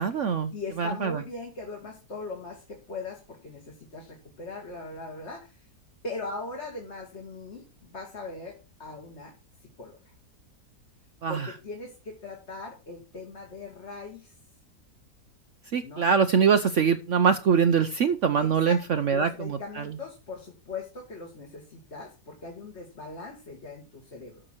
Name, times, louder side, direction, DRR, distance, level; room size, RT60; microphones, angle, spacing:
voice 1, 0.0-0.5 0.8-1.2 11.2-11.5 15.7-19.9, right 6 dB, 60° right, 9 dB, 0.9 m, -23 dB
voice 2, 0.5-5.7 6.0-9.3 9.8-10.0 11.3-14.3 15.8-16.1 18.4-24.4, left 3 dB, 40° left, 0 dB, 2.5 m, -40 dB
14.0 x 6.1 x 4.5 m, 0.33 s
omnidirectional pair, 1.7 m